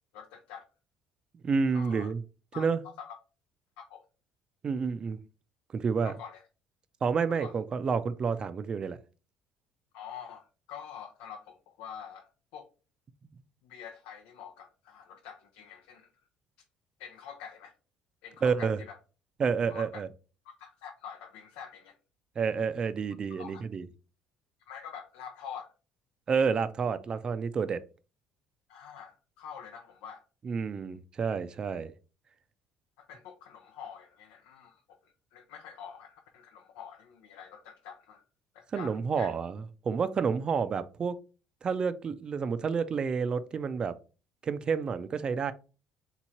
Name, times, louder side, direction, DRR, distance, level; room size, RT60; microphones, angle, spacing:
voice 1, 0.1-0.6 1.7-2.1 2.5-2.7 3.0-3.2 3.8-4.0 6.0-6.4 7.4-7.5 9.9-12.7 13.6-16.1 17.0-17.7 18.2-19.0 19.7-20.0 20.4-22.0 23.4-23.6 24.7-25.7 28.7-30.2 33.0-38.2 38.5-39.3, left 7 dB, 90° left, 0.6 m, -46 dB
voice 2, 1.4-2.2 2.6-2.8 4.6-5.2 5.7-6.1 7.0-9.0 18.4-18.8 19.4-20.1 22.4-23.9 26.3-27.8 30.4-31.9 38.7-41.2 41.6-43.9 44.4-45.5, right 5 dB, 35° right, 0.5 m, -29 dB
3.7 x 3.0 x 4.2 m
cardioid pair, 100°, 2 cm